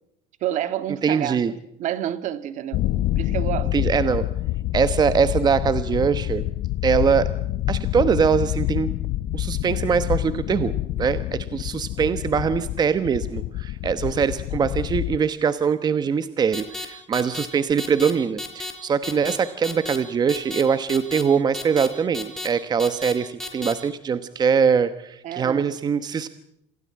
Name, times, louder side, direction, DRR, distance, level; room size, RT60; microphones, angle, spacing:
voice 1, 0.4-2.9 3.2-3.7 25.2-25.7, right 11 dB, 50° right, 1.8 m, -29 dB
voice 2, 1.0-1.5 3.7-4.3 4.7-6.4 6.8-7.3 7.7-8.9 9.3-10.7 11.0-26.3, right 6 dB, 25° right, 1.1 m, -22 dB
sound 1, 2.7-15.2, left 15 dB, 55° left, 0.9 m, -27 dB
sound 2, 16.5-16.9 17.1-17.5 17.8-18.1 18.4-18.7 19.0-19.4 19.6-20.0 20.3-20.6 20.9-21.2 21.5-21.9 22.1-22.5 22.8-23.1 23.4-23.7, left 2 dB, ahead, 5.0 m, -32 dB
27.5 x 16.5 x 8.7 m
supercardioid pair, 125°, 16 cm